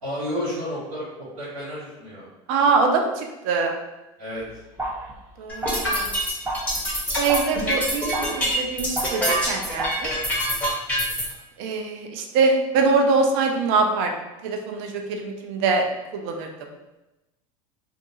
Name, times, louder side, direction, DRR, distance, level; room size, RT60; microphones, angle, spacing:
voice 1, 0.0-2.3 4.2-4.6, equal, 90° right, -11 dB, 1.2 m, -31 dB
voice 2, 2.5-3.7 5.4-6.1 7.1-10.1 11.6-14.1 14.4-15.8 16.1-16.7, right 4 dB, 60° right, 3 dB, 0.5 m, -23 dB
sound 1, 4.4-10.5, right 1 dB, 15° right, 0.8 m, -34 dB
sound 2, 5.5-11.2, equal, 10° left, 1.1 m, -25 dB
2.5 x 2.3 x 2.6 m, 1.0 s
hypercardioid pair, 90°, 18 cm